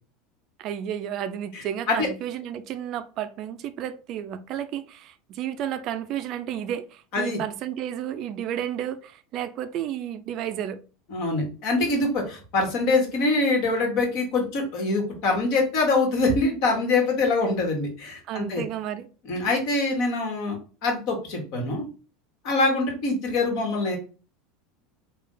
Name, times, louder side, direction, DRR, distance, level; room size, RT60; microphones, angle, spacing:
voice 1, 0.6-10.8 18.3-19.1, right 10 dB, 50° right, 0.4 m, -32 dB
voice 2, 1.5-2.1 7.1-7.4 11.1-18.6 19.3-21.8 22.4-24.0, left 3 dB, 60° left, 1.6 m, -24 dB
3.4 x 2.4 x 3.8 m
supercardioid pair, 120°, 0 cm